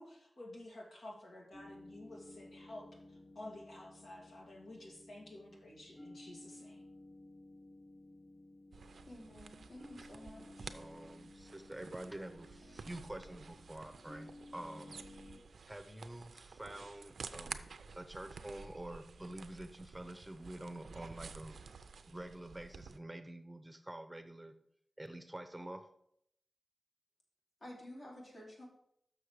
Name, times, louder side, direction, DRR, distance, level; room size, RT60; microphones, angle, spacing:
voice 1, 0.0-6.8, left 1 dB, 85° left, -2 dB, 2.2 m, -51 dB
sound 1, 1.5-15.4, left 1 dB, 25° left, 3.1 m, -56 dB
sound 2, 8.7-23.0, right 5 dB, 85° right, 0.4 m, -52 dB
voice 2, 9.0-10.8 27.6-28.7, left 1 dB, 60° left, -3 dB, 3.0 m, -52 dB
voice 3, 10.7-15.0 15.7-17.6 17.9-21.6 22.1-24.5 25.0-25.8, right 1 dB, 10° right, 8 dB, 0.6 m, -47 dB
6.4 x 6.4 x 4.9 m, 0.72 s
wide cardioid pair, 90°, 0 cm